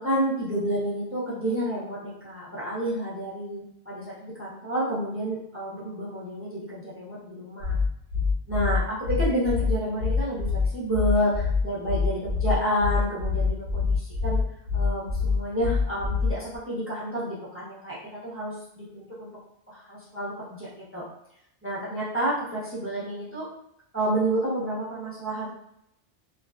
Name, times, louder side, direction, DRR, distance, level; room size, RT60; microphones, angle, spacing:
voice 1, 0.0-7.8 8.5-14.4 14.7-19.3 19.7-21.0 21.6-23.5 23.9-25.5, equal, 15° right, -8 dB, 0.6 m, -29 dB
sound 1, 7.6-16.6, left 5 dB, 80° right, 0.9 m, -25 dB
2.4 x 2.2 x 2.3 m, 0.77 s
omnidirectional pair, 1.2 m